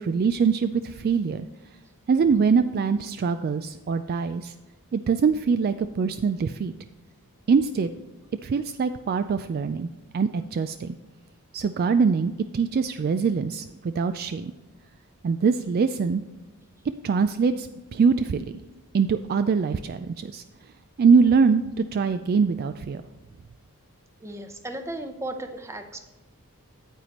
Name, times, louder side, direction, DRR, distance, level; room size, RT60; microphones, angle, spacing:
voice 1, 0.0-1.5 2.1-4.5 4.9-6.7 7.5-7.9 8.4-11.0 11.5-14.5 15.2-16.2 17.0-18.5 18.9-20.4 21.0-23.0, right 5 dB, 45° right, 10 dB, 0.3 m, -23 dB
voice 2, 24.2-26.0, right 1 dB, 15° right, 6 dB, 0.7 m, -35 dB
9.0 x 8.6 x 3.0 m, 1.2 s
head